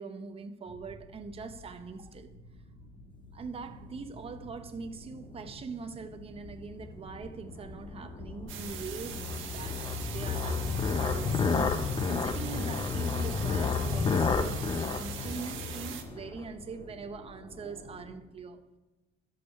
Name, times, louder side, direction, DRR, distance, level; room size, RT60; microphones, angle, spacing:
voice 1, 0.0-2.3 3.3-11.4 12.1-18.6, right 5 dB, 30° right, 0.6 m, -42 dB
sound 1, 0.7-18.1, left 1 dB, 40° left, 1.9 m, -50 dB
sound 2, 6.9-16.4, left 5 dB, 25° left, 0.5 m, -31 dB
sound 3, 8.5-16.0, right 9 dB, 70° right, 1.1 m, -42 dB
11.5 x 6.4 x 5.5 m
cardioid pair, 150°, 21 cm